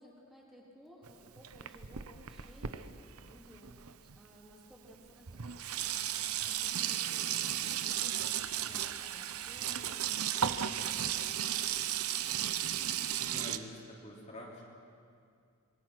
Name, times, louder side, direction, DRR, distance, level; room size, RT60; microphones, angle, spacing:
voice 1, 0.0-12.7, equal, ahead, -4 dB, 3.3 m, -58 dB
Sink (filling or washing), 1.0-4.2 4.9-5.0 5.3-13.6, right 10 dB, 85° right, 0.9 m, -35 dB
voice 2, 13.2-14.7, left 1 dB, 30° left, -3 dB, 3.2 m, -47 dB
26.5 x 21.5 x 6.1 m, 2.3 s
head